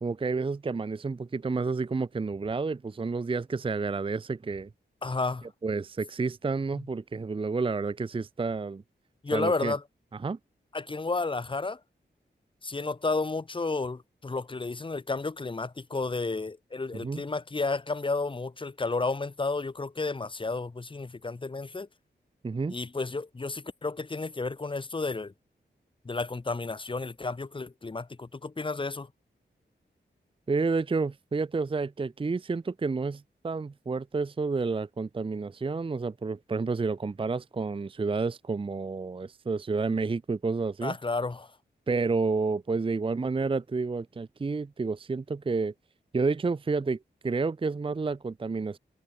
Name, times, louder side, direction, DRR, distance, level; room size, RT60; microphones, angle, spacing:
voice 1, 0.0-4.7 5.6-8.8 9.3-9.8 10.2-10.4 16.9-17.2 22.4-22.7 30.5-41.0 41.9-45.7 46.1-48.8, right 4 dB, 30° right, 0.5 m, -30 dB
voice 2, 5.0-5.5 6.7-6.8 9.2-9.8 10.7-11.8 12.6-21.9 22.7-25.3 26.0-29.1 40.8-41.5, left 3 dB, 25° left, 0.9 m, -32 dB
wide cardioid pair, 70°, 19 cm